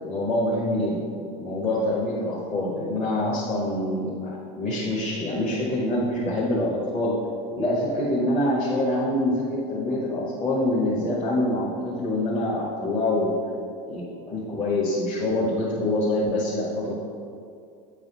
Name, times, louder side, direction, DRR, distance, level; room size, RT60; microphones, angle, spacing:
voice 1, 0.1-1.1 1.3-7.2 7.6-13.4 13.8-17.0, left 1 dB, 45° left, -6 dB, 1.5 m, -25 dB
8.3 x 4.1 x 4.0 m, 2.4 s
supercardioid pair, 100°, 17 cm